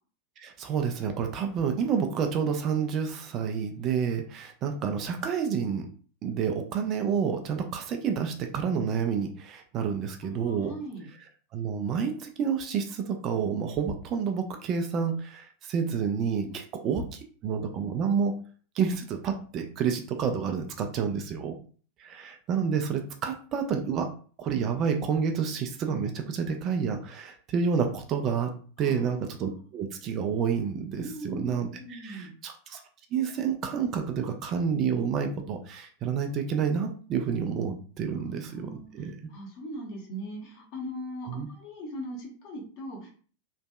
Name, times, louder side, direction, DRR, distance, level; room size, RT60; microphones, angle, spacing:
voice 1, 0.4-5.9 6.2-10.7 11.5-18.4 18.8-21.6 22.0-24.1 24.4-28.5 28.8-32.8 33.1-39.1 41.3-41.5, right 6 dB, 35° right, 5 dB, 0.4 m, -29 dB
voice 2, 10.3-11.1 16.4-16.6 28.8-29.2 30.9-32.3 38.1-43.1, equal, 45° left, 0 dB, 1.1 m, -40 dB
3.0 x 2.5 x 2.2 m, 0.41 s
figure-of-eight pair, 90°, 0 cm